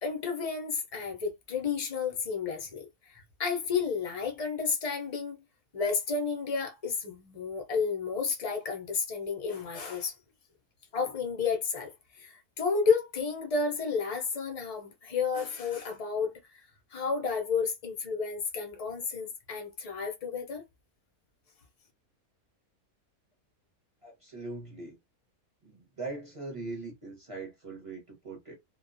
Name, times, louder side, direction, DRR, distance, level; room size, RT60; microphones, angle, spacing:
voice 1, 0.0-5.4 5.7-10.1 10.9-16.6 16.9-20.6, left 5 dB, 60° left, 0.4 m, -31 dB
voice 2, 24.0-25.0 25.6-28.6, right 3 dB, 30° right, 0.6 m, -41 dB
2.3 x 2.2 x 2.5 m
omnidirectional pair, 1.5 m